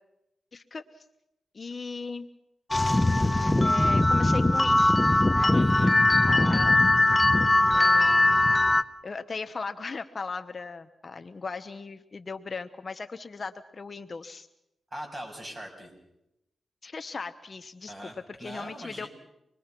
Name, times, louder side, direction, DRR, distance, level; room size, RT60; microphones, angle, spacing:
voice 1, 0.5-0.8 1.5-2.3 3.6-4.9 5.3-5.5 6.2-6.8 7.7-8.3 9.0-14.5 16.8-19.1, left 4 dB, 40° left, 9 dB, 0.9 m, -38 dB
sound 1, 2.7-8.8, left 2 dB, 15° left, 0.8 m, -21 dB
voice 2, 5.5-5.9 14.9-15.9 17.9-19.1, equal, 25° right, 1 dB, 6.8 m, -41 dB
26.0 x 21.5 x 5.9 m, 0.85 s
cardioid pair, 100°, 0 cm